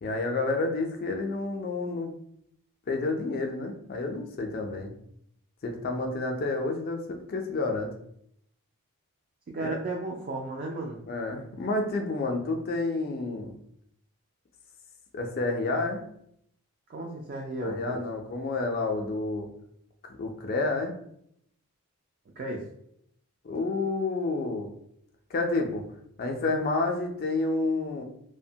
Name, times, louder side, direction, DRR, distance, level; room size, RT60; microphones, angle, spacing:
voice 1, 0.0-2.1 2.9-4.9 5.6-7.9 9.6-9.8 11.0-13.5 15.1-16.0 17.6-19.5 20.0-21.0 23.4-24.7 25.3-25.8 26.2-28.0, left 3 dB, 40° left, 3 dB, 0.4 m, -29 dB
voice 2, 9.5-11.0 16.9-18.0 22.4-22.6, right 2 dB, 40° right, -1 dB, 0.3 m, -34 dB
2.7 x 2.1 x 2.7 m, 0.72 s
head